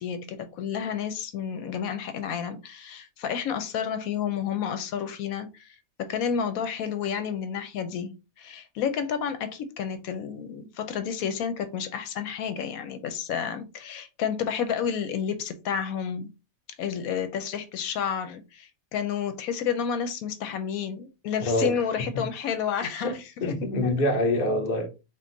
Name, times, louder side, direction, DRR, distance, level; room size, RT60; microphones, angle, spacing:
voice 1, 0.0-16.3 16.8-23.2 23.8-23.9, left 7 dB, 85° left, 1.1 m, -30 dB
voice 2, 21.4-22.3 23.0-24.9, left 1 dB, 45° left, 0.9 m, -26 dB
3.7 x 2.4 x 3.8 m
omnidirectional pair, 1.5 m